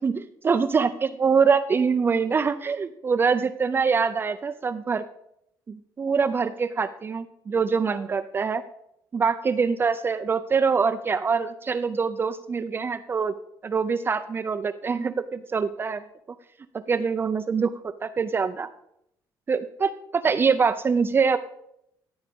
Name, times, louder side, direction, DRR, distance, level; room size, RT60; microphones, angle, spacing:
voice 1, 0.0-5.0 5.7-8.6 9.1-13.3 13.6-16.0 16.9-18.7 19.5-21.4, right 5 dB, 30° right, 8 dB, 0.5 m, -24 dB
15.0 x 8.1 x 5.2 m, 0.79 s
cardioid pair, 115°, 7 cm